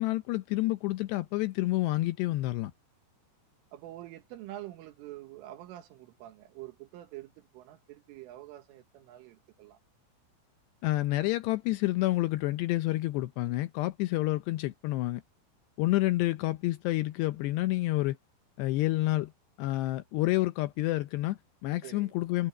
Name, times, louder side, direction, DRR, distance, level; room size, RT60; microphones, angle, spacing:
voice 1, 0.0-2.7 10.8-15.2 15.8-18.2 18.6-19.3 19.6-22.5, left 18 dB, 80° left, 2.5 m, -29 dB
voice 2, 3.7-9.8 21.8-22.1, right 14 dB, 90° right, 4.1 m, -46 dB
omnidirectional pair, 5.6 m